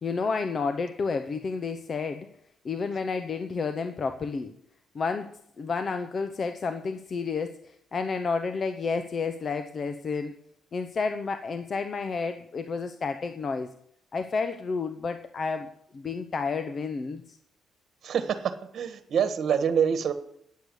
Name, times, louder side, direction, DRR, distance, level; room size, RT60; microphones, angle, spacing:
voice 1, 0.0-2.3 2.6-4.5 4.9-10.4 10.7-13.7 14.1-17.4, left 4 dB, 45° left, 8 dB, 0.9 m, -31 dB
voice 2, 18.0-20.1, right 7 dB, 60° right, 9 dB, 1.3 m, -26 dB
10.5 x 7.9 x 8.4 m, 0.70 s
cardioid pair, 90°, 0 cm